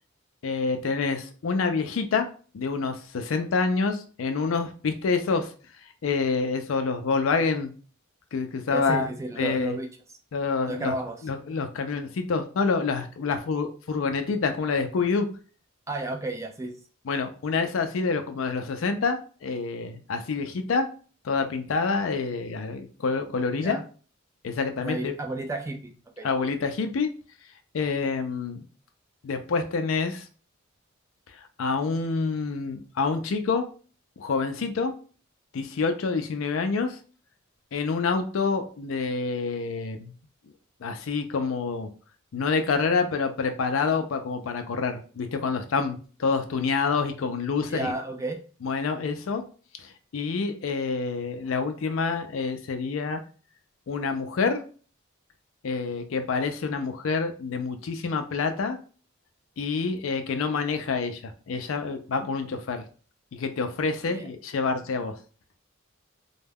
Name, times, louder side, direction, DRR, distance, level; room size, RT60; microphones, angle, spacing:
voice 1, 0.4-2.3 2.5-5.5 6.0-7.7 8.3-9.1 9.4-9.8 10.3-10.9 11.2-15.3 17.1-20.9 21.2-23.8 24.4-25.1 26.2-27.1 27.7-28.6 29.2-30.3 31.3-33.7 34.2-34.9 35.5-37.0 37.7-40.1 40.8-41.9 42.3-47.9 48.6-49.4 49.8-53.2 53.9-54.6 55.6-58.8 59.6-62.8 63.3-65.2, left 4 dB, 70° left, 7 dB, 0.4 m, -27 dB
voice 2, 8.7-9.9 10.7-11.2 15.9-16.8 23.6-23.8 24.8-26.3 47.7-48.4 64.1-64.3, right 2 dB, 15° right, 4 dB, 0.3 m, -32 dB
2.2 x 2.1 x 3.3 m, 0.39 s
head